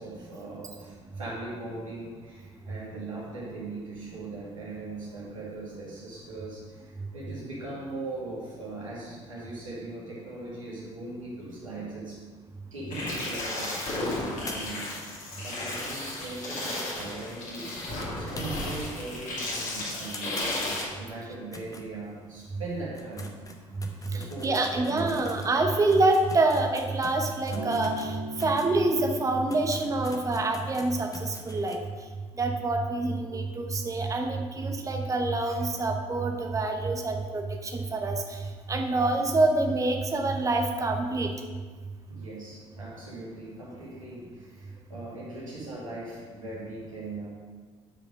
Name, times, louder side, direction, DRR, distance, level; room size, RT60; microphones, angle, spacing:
voice 1, 0.0-12.2 12.7-17.7 18.1-20.6 21.0-23.4 24.1-25.1 31.5-31.7 42.1-47.3, right 2 dB, 85° right, -6 dB, 2.1 m, -40 dB
sound 1, 12.9-20.8, left 2 dB, 50° left, 2.5 m, -34 dB
sound 2, 14.5-18.9 19.2-19.3 19.6-19.7 20.1-22.4 22.8-28.8 29.2-29.3 29.5-31.8, left 2 dB, 20° left, 1.1 m, -46 dB
voice 2, 24.1-31.8 32.4-38.4 38.7-41.3, right 2 dB, 20° right, 3 dB, 0.9 m, -26 dB
Acoustic guitar, 27.5-31.8 32.6-32.7, right 1 dB, 55° right, 2.5 m, -40 dB
8.6 x 5.1 x 5.1 m, 1.5 s
figure-of-eight pair, 55°, 17 cm